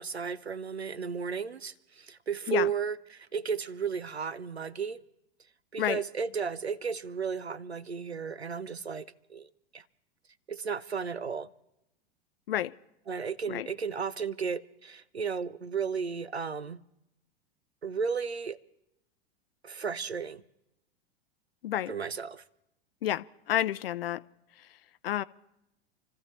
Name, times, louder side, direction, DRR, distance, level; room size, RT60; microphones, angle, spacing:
voice 1, 0.0-5.0 5.7-9.8 10.5-11.5 13.1-16.8 17.8-18.6 19.6-20.4 21.9-22.4, right 6 dB, 90° right, 0.6 m, -34 dB
voice 2, 23.0-24.2 25.0-25.2, left 12 dB, 65° left, 0.6 m, -30 dB
28.5 x 14.0 x 3.2 m
figure-of-eight pair, 90°, 31 cm